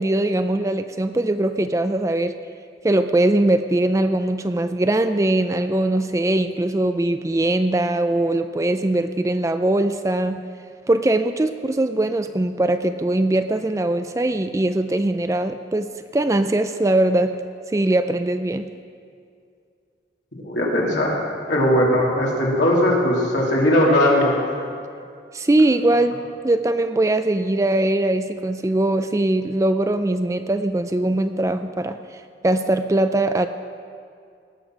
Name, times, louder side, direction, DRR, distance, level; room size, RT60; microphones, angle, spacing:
voice 1, 0.0-2.3 2.8-10.4 10.9-17.4 17.7-18.6 25.3-26.2 26.4-33.5, right 1 dB, 15° right, 9 dB, 0.3 m, -21 dB
voice 2, 20.4-21.2 21.5-24.4, left 1 dB, 75° left, -4 dB, 2.9 m, -19 dB
18.5 x 6.9 x 6.0 m, 2.3 s
head